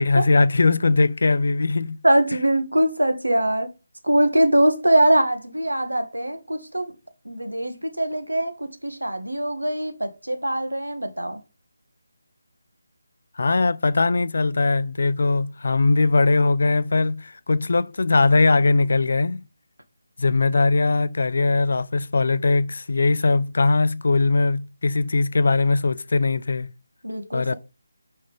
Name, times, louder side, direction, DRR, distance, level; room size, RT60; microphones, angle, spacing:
voice 1, 0.0-2.0 13.4-19.4 20.2-26.7 27.3-27.5, left 3 dB, 55° left, 0.4 m, -20 dB
voice 2, 2.0-3.7 4.0-6.9 7.2-11.4 27.0-27.5, right 1 dB, 85° right, 1.3 m, -22 dB
5.3 x 5.2 x 3.6 m
figure-of-eight pair, 155°, 0 cm